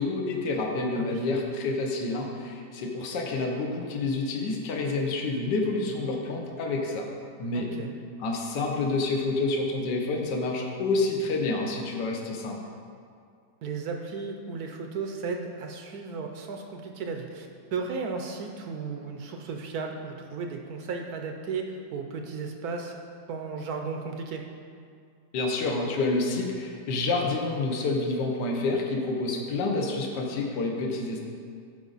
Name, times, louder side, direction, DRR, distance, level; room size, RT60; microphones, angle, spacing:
voice 1, 0.0-7.1 7.4-7.7 8.2-12.6 25.3-31.2, left 3 dB, 70° left, 0 dB, 1.6 m, -28 dB
voice 2, 7.5-7.9 13.6-23.0 23.3-24.4, right 4 dB, 65° right, 3 dB, 1.0 m, -35 dB
12.5 x 5.1 x 4.0 m, 2.2 s
omnidirectional pair, 2.0 m